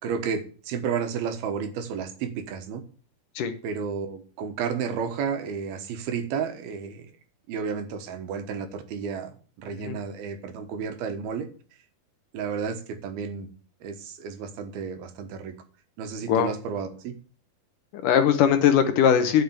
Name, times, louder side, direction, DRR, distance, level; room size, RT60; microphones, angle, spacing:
voice 1, 0.0-2.8 3.6-7.1 7.5-11.5 12.3-13.5 13.8-15.5 16.0-17.2, right 6 dB, 80° right, 8 dB, 3.3 m, -32 dB
voice 2, 17.9-19.4, left 8 dB, 70° left, 9 dB, 2.3 m, -20 dB
10.5 x 6.6 x 8.1 m, 0.39 s
omnidirectional pair, 4.4 m